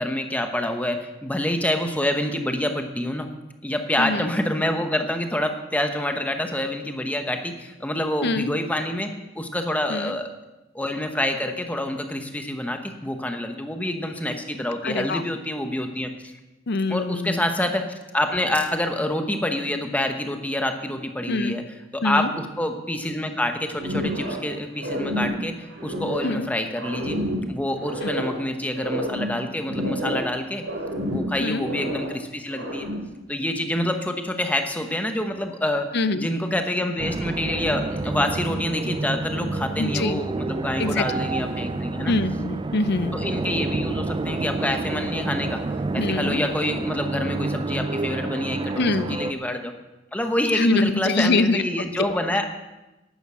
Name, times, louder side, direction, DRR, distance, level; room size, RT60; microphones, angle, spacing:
voice 1, 0.0-3.3 3.6-9.1 9.4-10.3 10.7-16.3 16.9-17.8 18.1-21.7 22.0-27.2 27.5-30.6 31.1-32.9 33.3-35.9 36.1-42.1 43.1-45.6 45.9-49.7 50.1-52.5, left 1 dB, 10° left, 5 dB, 1.0 m, -27 dB
voice 2, 4.0-4.3 8.2-8.5 9.9-10.2 14.8-15.2 16.7-17.4 21.3-21.6 22.0-22.3 26.2-26.5 28.0-28.1 31.4-31.6 35.9-36.3 39.8-40.2 40.8-41.0 42.1-43.2 46.0-46.4 48.8-49.2 50.5-51.6 52.0-52.1, left 3 dB, 55° left, 13 dB, 0.6 m, -24 dB
sound 1, 23.8-24.5 24.8-26.4 26.8-28.4 28.7-30.4 30.6-32.2 32.5-33.1, equal, 80° right, 2.9 m, -29 dB
sound 2, 37.0-49.3, right 3 dB, 25° right, 0.4 m, -29 dB
11.0 x 9.2 x 6.2 m, 1.0 s
head